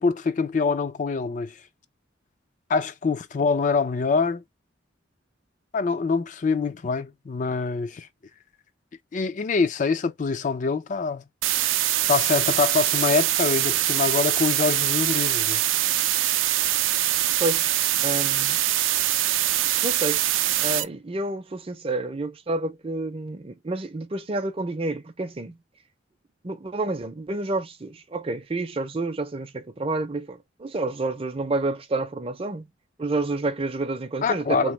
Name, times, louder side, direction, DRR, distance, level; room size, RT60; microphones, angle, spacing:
voice 1, 0.0-1.5 2.7-4.4 5.7-8.1 9.1-11.2 12.1-15.6 34.2-34.7, left 4 dB, 40° left, 0.4 m, -25 dB
sound 1, 11.4-20.8, right 13 dB, 85° right, 0.4 m, -23 dB
voice 2, 18.0-18.6 19.8-20.3 20.6-25.6 26.4-32.7 33.0-34.7, right 2 dB, 30° right, 0.5 m, -29 dB
3.0 x 2.1 x 3.1 m
head